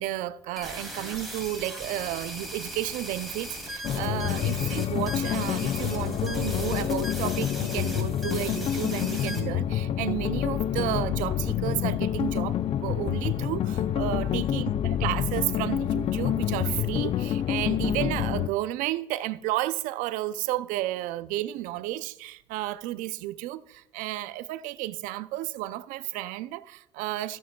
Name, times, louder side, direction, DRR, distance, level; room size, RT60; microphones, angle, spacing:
voice 1, 0.0-12.6 12.8-27.4, right 15 dB, 85° right, 0.4 m, -32 dB
sound 1, 0.6-9.4, right 1 dB, ahead, 2.4 m, -39 dB
sound 2, 3.8-18.5, left 10 dB, 50° left, 0.4 m, -28 dB
13.5 x 7.4 x 2.2 m
cardioid pair, 90°, 13 cm